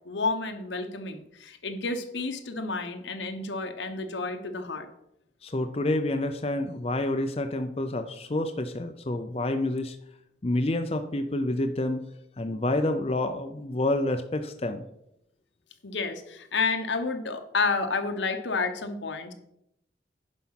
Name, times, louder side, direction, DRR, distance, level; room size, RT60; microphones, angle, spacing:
voice 1, 0.0-4.9 15.8-19.3, left 4 dB, 80° left, 7 dB, 1.1 m, -30 dB
voice 2, 5.4-10.0 10.4-12.0 12.4-14.8, left 1 dB, 30° left, 6 dB, 0.6 m, -28 dB
10.0 x 5.5 x 5.8 m, 0.80 s
head